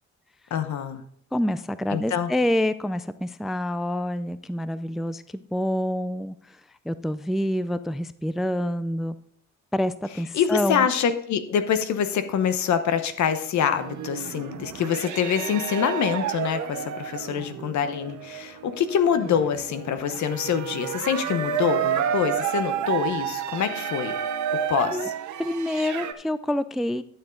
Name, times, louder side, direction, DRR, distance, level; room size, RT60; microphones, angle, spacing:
voice 1, 0.5-1.0 1.9-2.3 10.3-24.1 24.7-25.1, left 8 dB, 70° left, 10 dB, 1.0 m, -25 dB
voice 2, 1.3-6.6 6.9-9.2 9.7-10.9 24.9-25.1 25.4-27.0, left 1 dB, ahead, 14 dB, 0.3 m, -27 dB
sound 1, 13.6-26.1, right 9 dB, 70° right, 0.9 m, -30 dB
11.5 x 7.0 x 3.9 m, 0.65 s
cardioid pair, 90°, 30 cm